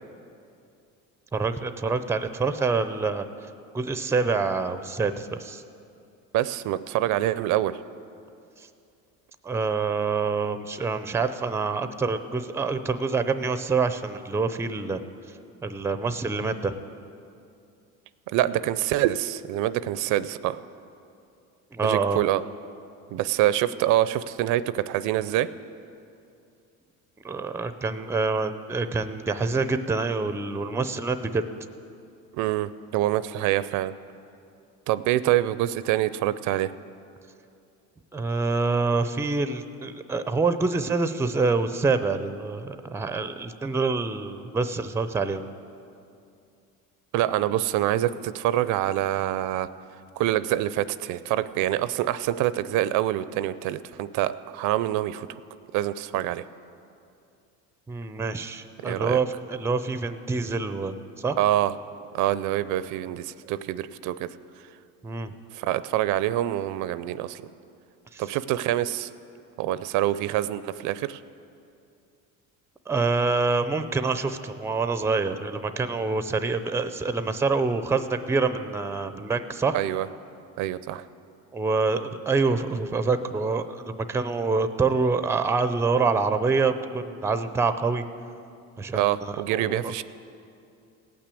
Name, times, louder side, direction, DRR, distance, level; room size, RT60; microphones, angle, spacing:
voice 1, 1.3-3.2 3.7-5.6 8.6-8.7 9.4-15.0 15.6-16.7 21.7-22.2 27.2-31.4 38.1-45.4 57.9-61.4 65.0-65.3 68.1-68.2 72.9-79.8 81.5-88.0 88.8-89.9, right 4 dB, 10° right, 11 dB, 0.5 m, -26 dB
voice 2, 6.3-7.8 18.3-20.6 21.8-22.4 23.1-25.5 32.3-33.9 34.9-36.7 47.1-49.7 50.2-55.3 55.7-56.5 58.8-59.2 61.4-61.7 62.1-64.3 65.5-67.4 68.2-69.1 69.6-71.2 79.7-80.1 80.6-81.0 88.9-90.0, right 13 dB, 70° right, 15 dB, 0.5 m, -25 dB
17.0 x 6.1 x 8.3 m, 2.6 s
cardioid pair, 120°, 32 cm